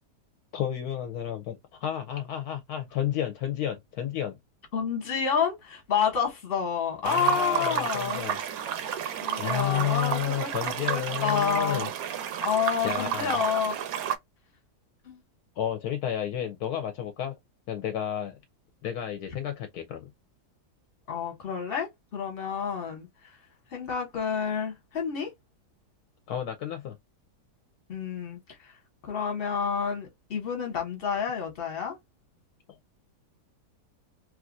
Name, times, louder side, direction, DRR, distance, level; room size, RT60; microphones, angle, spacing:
voice 1, 0.5-4.4 7.0-8.4 9.4-11.9 12.8-13.4 15.6-17.3 17.7-18.4 18.8-20.1 26.3-27.0, left 10 dB, 70° left, 1.0 m, -31 dB
voice 2, 4.7-8.2 9.2-11.9 12.4-13.7 15.0-15.2 21.1-23.1 23.7-25.3 27.9-28.7 29.0-32.0, left 6 dB, 40° left, 1.1 m, -29 dB
sound 1, 7.0-14.2, right 9 dB, 70° right, 1.0 m, -31 dB
3.1 x 2.4 x 2.5 m
omnidirectional pair, 1.8 m